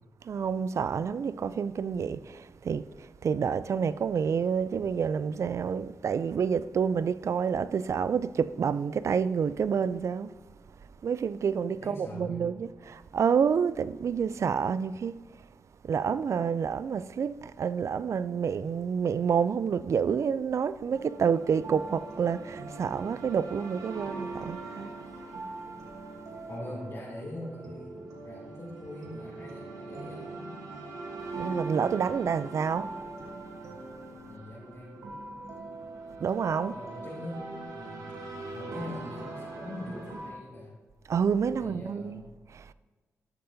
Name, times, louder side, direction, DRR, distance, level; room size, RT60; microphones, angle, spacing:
voice 1, 0.2-10.3 10.8-15.5 15.8-24.9 31.4-32.9 36.2-36.7 41.1-42.2 42.5-42.7, right 6 dB, 60° right, 0.3 m, -28 dB
voice 2, 11.8-12.4 26.5-30.6 34.3-35.2 36.6-37.5 37.7-38.1 38.5-40.7 41.6-42.2, left 1 dB, 55° left, 2.8 m, -42 dB
sound 1, 20.9-40.3, right 3 dB, 85° right, 1.2 m, -41 dB
12.0 x 6.7 x 2.7 m
cardioid pair, 60°, 6 cm